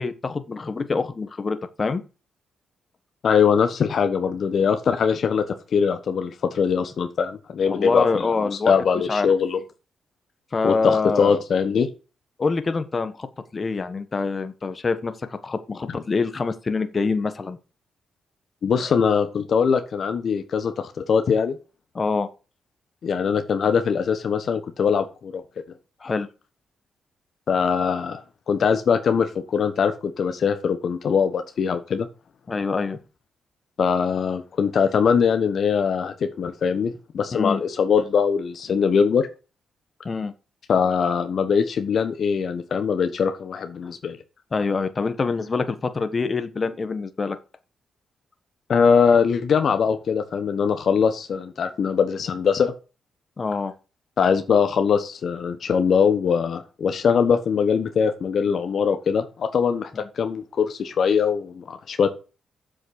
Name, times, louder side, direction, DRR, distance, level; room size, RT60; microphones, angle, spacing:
voice 1, 0.0-2.0 7.7-8.7 9.1-9.3 10.5-11.4 12.4-13.3 13.5-17.6 18.8-18.9 21.9-22.3 26.0-26.3 32.5-33.0 37.3-37.6 40.0-40.3 44.5-47.4 53.4-53.7, left 4 dB, 40° left, 10 dB, 1.4 m, -25 dB
voice 2, 3.2-8.3 8.7-9.6 10.6-11.9 18.6-21.6 23.0-25.4 27.5-32.1 33.8-39.3 40.7-44.2 48.7-52.7 54.2-59.9 60.2-62.1, left 6 dB, 65° left, 8 dB, 1.2 m, -22 dB
7.8 x 6.3 x 6.5 m, 0.33 s
cardioid pair, 70°, 0 cm